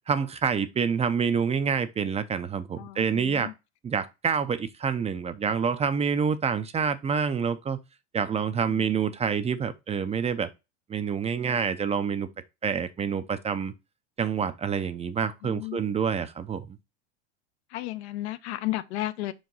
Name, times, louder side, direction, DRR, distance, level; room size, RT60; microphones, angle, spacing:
voice 1, 0.1-3.5 3.8-7.8 8.1-10.5 10.9-12.3 12.6-13.7 14.2-16.8, right 6 dB, 20° right, 0.6 m, -27 dB
voice 2, 2.7-3.5 8.6-8.9 15.4-15.9 17.7-19.3, left 16 dB, 70° left, 0.8 m, -34 dB
5.1 x 4.8 x 3.9 m
supercardioid pair, 110°, 34 cm